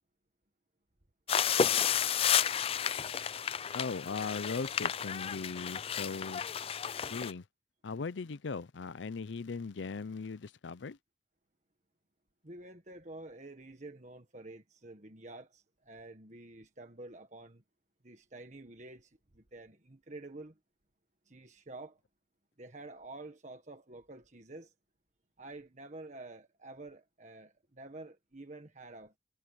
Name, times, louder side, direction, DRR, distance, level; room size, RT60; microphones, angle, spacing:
sound 1, 1.3-7.3, left 8 dB, 35° left, 0.4 m, -31 dB
voice 1, 3.7-6.4 7.1-7.4 7.8-11.0, left 4 dB, 90° left, 0.6 m, -38 dB
voice 2, 12.4-17.6 18.0-20.6 21.2-22.0 22.6-24.7 25.4-29.1, right 2 dB, 40° right, 1.6 m, -49 dB
head